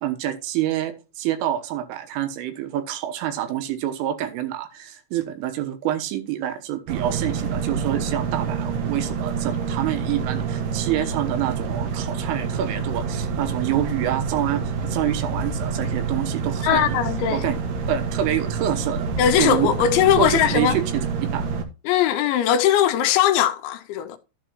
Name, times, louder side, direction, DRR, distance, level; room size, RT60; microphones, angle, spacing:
voice 1, 0.0-17.0 17.3-17.6 17.9-19.1 19.4-19.7 20.2-21.0 21.3-21.5, right 11 dB, 85° right, 3.7 m, -27 dB
sound 1, 6.9-21.7, right 5 dB, 65° right, 3.1 m, -27 dB
voice 2, 16.6-17.4 19.2-20.8 21.9-24.2, left 10 dB, 80° left, 2.8 m, -20 dB
13.0 x 7.6 x 3.0 m
omnidirectional pair, 5.7 m